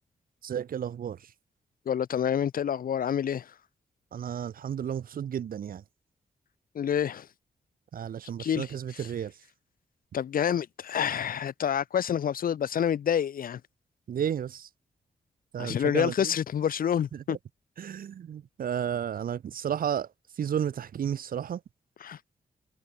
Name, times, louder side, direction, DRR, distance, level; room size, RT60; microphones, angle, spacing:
voice 1, 0.4-1.2 4.1-5.8 7.9-9.3 14.1-14.7 15.5-16.3 17.1-17.4 17.8-20.1 20.4-21.6, right 9 dB, 85° right, 5.0 m, -32 dB
voice 2, 1.9-3.5 6.7-7.3 8.4-9.1 10.1-13.6 15.6-17.4 22.0-22.2, left 9 dB, 80° left, 3.7 m, -28 dB
cardioid pair, 75°, 14 cm